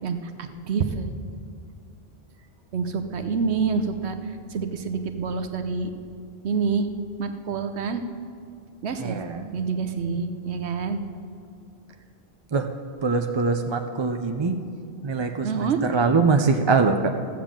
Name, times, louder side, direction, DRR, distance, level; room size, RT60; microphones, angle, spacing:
voice 1, 0.0-1.1 2.7-5.9 6.4-6.9 7.2-8.0 8.8-9.2 9.5-11.0 15.4-15.8, right 5 dB, 85° right, 8 dB, 1.1 m, -27 dB
voice 2, 9.0-9.6 10.1-10.2 12.5-12.7 13.0-14.6 15.0-17.1, right 4 dB, 35° right, 6 dB, 0.4 m, -23 dB
14.0 x 7.4 x 7.3 m, 2.3 s
omnidirectional pair, 1.1 m